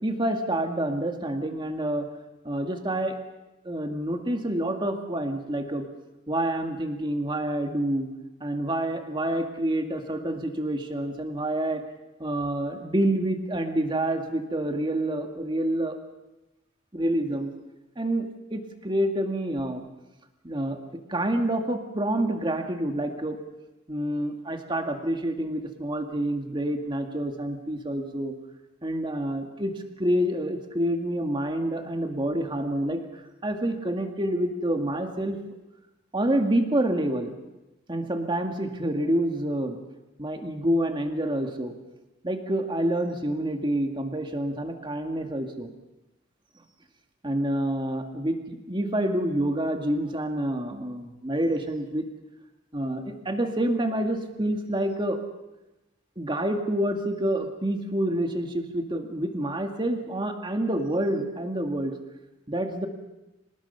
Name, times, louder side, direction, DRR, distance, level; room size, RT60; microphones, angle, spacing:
voice 1, 0.0-2.1 2.4-3.2 3.6-5.9 6.3-8.1 8.4-11.8 12.2-16.0 16.9-17.5 18.0-19.8 20.4-23.4 23.9-28.4 28.8-33.0 33.4-35.4 36.1-37.3 37.9-39.8 40.2-41.7 42.2-45.7 47.2-52.1 52.7-55.2 56.2-62.0 62.5-62.9, right 1 dB, 25° right, 4 dB, 2.0 m, -28 dB
26.0 x 19.5 x 5.7 m, 1.0 s
head